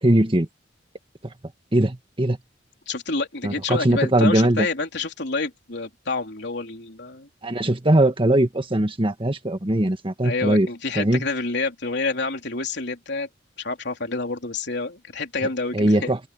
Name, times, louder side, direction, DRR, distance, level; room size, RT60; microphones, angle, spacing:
voice 1, 0.0-0.5 1.2-1.3 1.7-2.4 3.4-4.7 7.4-10.7 11.0-11.3 15.7-16.2, right 1 dB, 30° right, 1.7 m, -20 dB
voice 2, 2.9-7.3 10.2-13.3 13.6-16.1, left 3 dB, 65° left, 3.7 m, -28 dB
open air
head